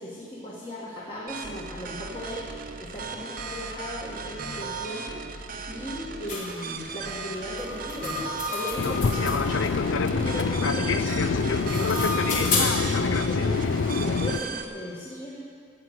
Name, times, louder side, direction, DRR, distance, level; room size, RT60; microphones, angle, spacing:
voice 1, 0.0-2.4 2.8-5.2 5.7-13.6 13.9-15.4, equal, 25° left, -6 dB, 1.7 m, -37 dB
sound 1, 1.3-14.6, right 4 dB, 45° right, 0.8 m, -37 dB
sound 2, 6.3-6.5 7.6-9.7 11.4-12.9, left 3 dB, 40° left, 2.7 m, -30 dB
Fixed-wing aircraft airplane, 8.8-14.4, left 4 dB, 80° left, 0.5 m, -25 dB
13.0 x 7.7 x 8.0 m, 2.2 s
head